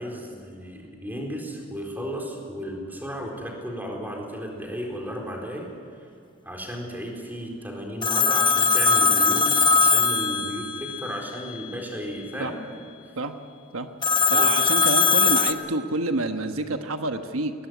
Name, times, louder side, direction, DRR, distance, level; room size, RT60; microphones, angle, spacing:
voice 1, 0.0-5.7 6.4-12.8 14.3-14.5, equal, 10° right, 0 dB, 4.2 m, -34 dB
Telephone, 8.0-11.1 14.0-15.5, left 5 dB, 20° left, 1.1 m, -20 dB
voice 2, 14.3-17.5, right 2 dB, 85° right, 7 dB, 1.2 m, -28 dB
21.5 x 18.5 x 9.4 m, 2.4 s
head